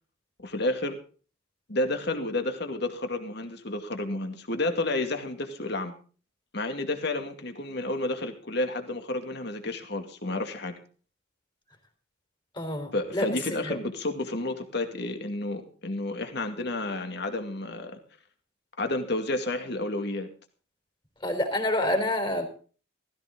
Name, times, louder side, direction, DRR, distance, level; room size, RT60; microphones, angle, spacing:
voice 1, 0.4-1.0 1.7-5.9 6.5-10.7 12.9-18.0 18.8-20.3, left 2 dB, 55° left, 6 dB, 2.4 m, -31 dB
voice 2, 12.5-13.3 13.6-13.8 21.2-22.5, left 1 dB, 25° left, 5 dB, 3.9 m, -27 dB
16.5 x 15.5 x 3.8 m, 0.39 s
head